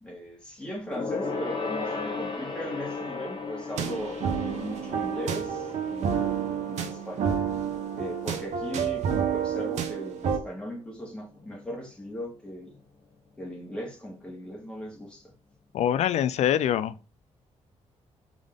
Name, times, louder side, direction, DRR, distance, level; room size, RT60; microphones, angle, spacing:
voice 1, 0.0-6.4 6.7-7.4 7.9-12.8 13.4-15.3, equal, 10° left, 1.5 m, -38 dB
Gong, 0.9-10.7 11.0-11.2 11.5-11.6, left 4 dB, 40° left, 1.2 m, -37 dB
sound 1, 3.8-10.4, right 8 dB, 75° right, 0.7 m, -29 dB
voice 2, 15.7-16.9, left 10 dB, 65° left, 0.4 m, -24 dB
3.6 x 3.5 x 3.7 m
wide cardioid pair, 170°, 12 cm